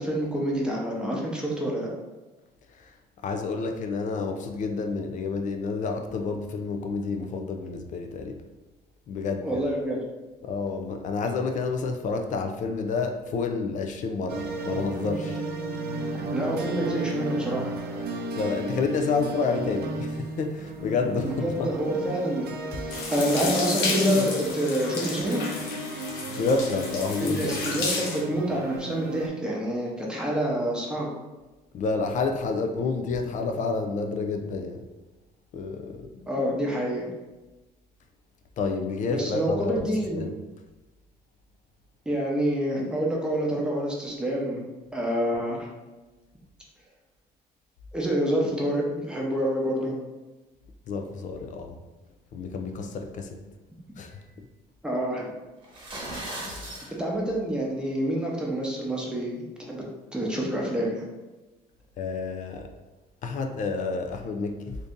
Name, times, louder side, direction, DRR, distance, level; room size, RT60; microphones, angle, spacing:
voice 1, 0.0-1.9 9.4-10.0 16.1-17.7 21.2-22.5 22.8-25.4 27.2-31.1 36.3-37.1 39.1-40.2 42.1-44.7 44.9-45.7 47.9-49.9 54.8-55.3 57.0-59.8 60.1-61.0, equal, 5° right, -3 dB, 0.7 m, -27 dB
voice 2, 3.2-8.4 9.1-9.6 10.4-15.4 18.1-21.7 26.3-27.5 31.7-34.8 35.5-36.3 38.6-39.9 40.1-40.4 50.9-51.8 52.3-53.4 54.0-54.2 56.4-56.9 62.0-62.7 63.2-64.8, left 4 dB, 50° left, 5 dB, 0.4 m, -29 dB
sound 1, 14.3-29.3, right 2 dB, 65° right, 0.5 m, -34 dB
sound 2, 22.9-28.2, left 3 dB, 85° left, 0.8 m, -32 dB
sound 3, 55.6-56.9, right 1 dB, 30° right, 1.0 m, -37 dB
2.6 x 2.6 x 3.5 m, 1.1 s
cardioid pair, 110°, 17 cm